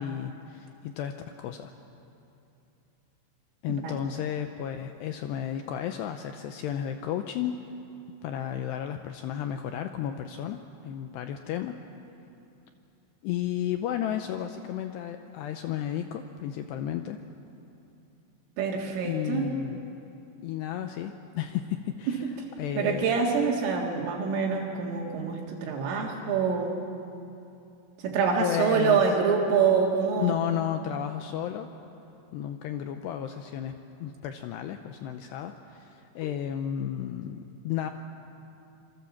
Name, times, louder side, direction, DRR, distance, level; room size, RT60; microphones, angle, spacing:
voice 1, 0.0-1.7 3.6-7.5 8.2-11.8 13.2-17.2 19.0-19.8 20.4-23.1 28.4-29.1 30.2-31.7 32.3-33.7 34.0-37.9, left 10 dB, 80° left, 7 dB, 2.5 m, -33 dB
voice 2, 18.6-19.5 22.8-26.7 28.0-30.4, right 6 dB, 80° right, -1 dB, 4.6 m, -26 dB
27.0 x 24.0 x 7.2 m, 2.7 s
omnidirectional pair, 5.7 m